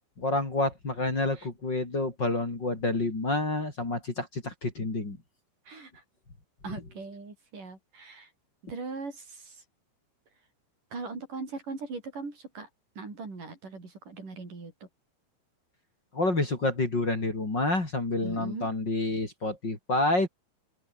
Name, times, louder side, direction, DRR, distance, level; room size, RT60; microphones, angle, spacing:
voice 1, 0.2-5.2 16.1-20.3, left 2 dB, 30° left, 4.9 m, -28 dB
voice 2, 5.7-6.0 6.6-8.3 8.7-9.6 10.9-12.7 13.0-14.7 18.2-18.7, right 4 dB, 60° right, 8.2 m, -40 dB
omnidirectional pair, 4.2 m